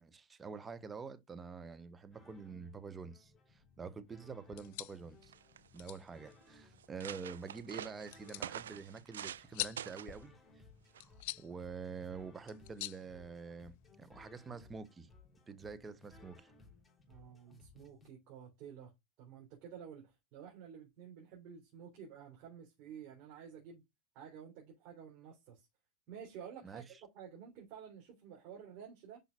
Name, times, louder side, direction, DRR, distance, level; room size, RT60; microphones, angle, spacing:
voice 1, 0.0-5.3 5.7-10.4 11.0-15.1 15.5-16.5 26.6-26.8, right 5 dB, 15° right, 1.2 m, -47 dB
sound 1, 2.1-18.1, left 3 dB, 15° left, 3.5 m, -63 dB
sound 2, 4.4-13.9, left 18 dB, 50° left, 0.5 m, -48 dB
sound 3, 4.9-5.0 5.2-5.8 6.4-6.5 6.8-9.5 9.8-10.2 10.9-11.2, right 10 dB, 65° right, 0.3 m, -46 dB
voice 2, 17.1-18.9 19.2-23.8 24.1-25.7 26.1-29.2, right 8 dB, 40° right, 3.6 m, -51 dB
10.0 x 5.6 x 2.4 m
figure-of-eight pair, 90°, 0 cm